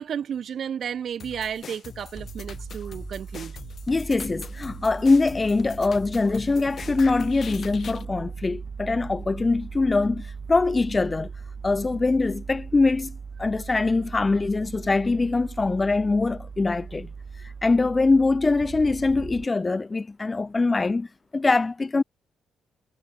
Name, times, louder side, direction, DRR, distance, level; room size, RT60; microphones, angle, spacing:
voice 1, 0.0-3.6, right 8 dB, 55° right, 0.8 m, -32 dB
sound 1, 1.2-8.0, left 7 dB, 50° left, 2.8 m, -42 dB
sound 2, 2.1-19.5, right 5 dB, 40° right, 2.1 m, -39 dB
voice 2, 3.9-11.3 11.6-17.1 17.6-21.1 21.3-22.0, left 3 dB, 25° left, 1.0 m, -23 dB
cardioid pair, 90°, 0 cm